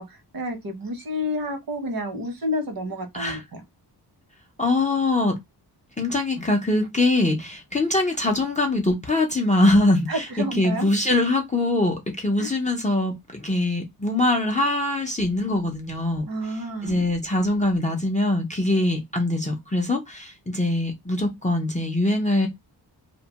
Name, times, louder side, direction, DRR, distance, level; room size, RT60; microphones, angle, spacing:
voice 1, 0.0-3.6 10.1-10.9 12.4-12.5 16.3-17.0, equal, 55° right, 0.8 m, -30 dB
voice 2, 4.6-5.4 6.0-16.3 16.8-22.5, left 2 dB, 20° left, 0.4 m, -23 dB
2.6 x 2.1 x 2.7 m
wide cardioid pair, 175°, 41 cm